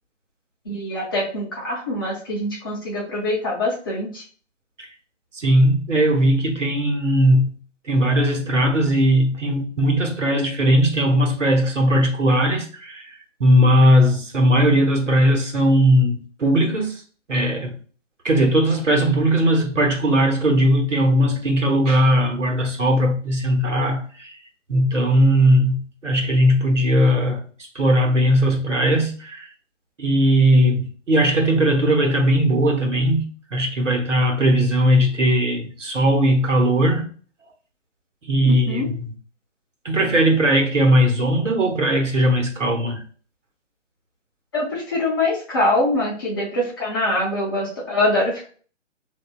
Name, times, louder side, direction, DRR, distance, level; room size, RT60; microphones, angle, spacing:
voice 1, 0.6-4.2 38.5-38.9 44.5-48.5, left 1 dB, 20° left, 0.7 m, -24 dB
voice 2, 5.3-7.5 7.9-13.1 13.4-17.0 17.3-17.8 18.2-24.4 24.7-27.4 27.7-29.5 30.0-37.1 38.2-39.1 39.8-43.0, equal, 75° right, 1.1 m, -18 dB
4.2 x 2.6 x 2.3 m
figure-of-eight pair, 140°, 37 cm